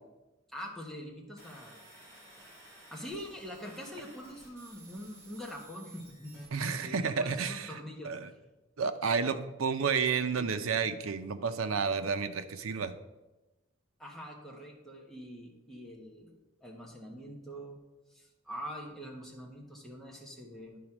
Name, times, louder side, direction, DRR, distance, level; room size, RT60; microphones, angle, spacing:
voice 1, 0.5-1.8 2.9-8.1 10.4-10.6 14.0-17.8 18.1-20.8, equal, ahead, -2 dB, 1.3 m, -44 dB
sound 1, 1.4-6.5, right 2 dB, 15° right, 2.4 m, -55 dB
voice 2, 6.5-7.7 8.0-8.3 8.8-13.0, right 5 dB, 90° right, 9 dB, 0.6 m, -31 dB
10.0 x 4.2 x 6.0 m, 1.0 s
head